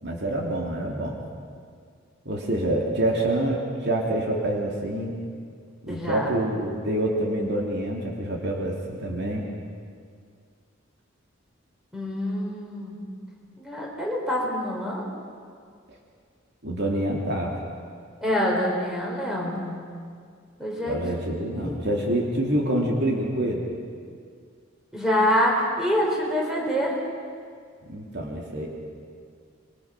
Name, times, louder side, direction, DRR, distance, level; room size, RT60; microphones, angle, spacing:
voice 1, 0.0-1.2 2.2-5.1 5.8-9.4 16.6-17.5 20.9-23.6 27.9-28.7, right 1 dB, 55° right, -1 dB, 2.8 m, -26 dB
voice 2, 5.9-6.3 11.9-13.0 13.6-15.0 18.2-19.8 20.6-21.8 24.9-27.0, equal, 5° right, -3 dB, 4.9 m, -26 dB
26.0 x 22.5 x 6.0 m, 2.1 s
head